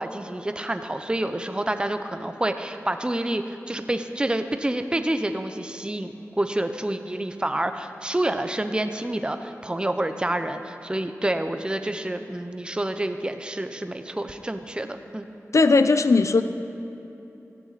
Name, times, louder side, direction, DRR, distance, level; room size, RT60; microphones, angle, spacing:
voice 1, 0.0-15.3, right 1 dB, 15° right, 7 dB, 0.8 m, -28 dB
voice 2, 15.5-16.4, left 3 dB, 65° left, 10 dB, 0.7 m, -17 dB
18.0 x 14.0 x 4.2 m, 2.9 s
wide cardioid pair, 50°, 6 cm